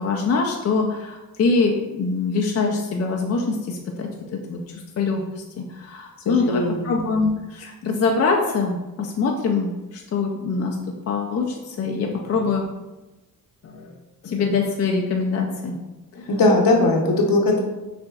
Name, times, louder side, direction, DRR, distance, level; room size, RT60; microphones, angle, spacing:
voice 1, 0.0-10.8 11.1-12.6 13.6-14.0 14.2-15.8 16.1-16.3, left 4 dB, 40° left, 0 dB, 0.4 m, -24 dB
voice 2, 6.3-7.0 16.3-17.6, left 2 dB, 65° left, 1 dB, 0.9 m, -19 dB
5.8 x 2.5 x 2.3 m, 1.1 s
cardioid pair, 90°, 37 cm